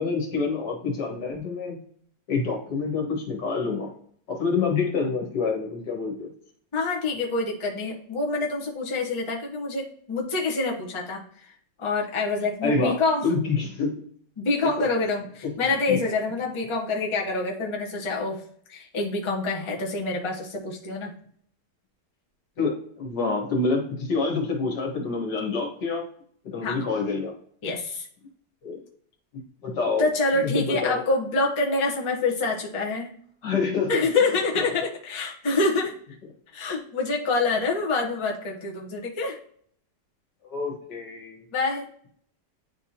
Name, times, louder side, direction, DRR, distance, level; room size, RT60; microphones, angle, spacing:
voice 1, 0.0-1.8 2.3-3.9 4.3-6.3 12.6-13.0 13.2-13.9 14.8-14.9 15.9-16.0 22.6-26.0 26.4-27.3 28.6-28.8 29.6-30.1 30.3-31.0 33.4-34.0 40.4-41.4, left 4 dB, 70° left, 0 dB, 2.1 m, -27 dB
voice 2, 6.7-11.5 11.8-13.2 14.4-18.4 18.7-21.1 26.6-26.8 27.6-28.1 30.0-33.1 33.9-35.9 36.5-39.4 41.5-41.9, left 3 dB, 25° left, -2 dB, 0.8 m, -26 dB
9.9 x 3.6 x 2.8 m, 0.62 s
omnidirectional pair, 1.9 m